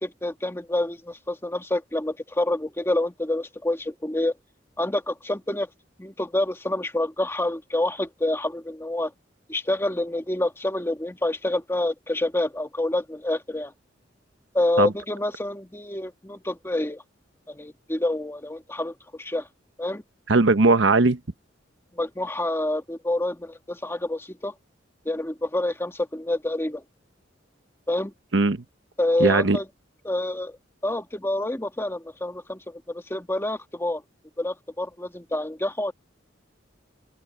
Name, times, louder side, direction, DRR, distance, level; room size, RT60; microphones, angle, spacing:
voice 1, 0.0-4.3 4.8-5.7 6.0-9.1 9.5-13.7 14.5-17.0 17.5-19.5 19.8-20.0 21.9-24.5 25.0-26.8 27.9-28.1 29.0-29.6 30.0-30.6 30.8-34.0 34.4-35.9, left 1 dB, 15° left, 1.6 m, -27 dB
voice 2, 20.3-21.2 28.3-28.6 29.2-29.6, right 3 dB, 75° right, 1.0 m, -18 dB
head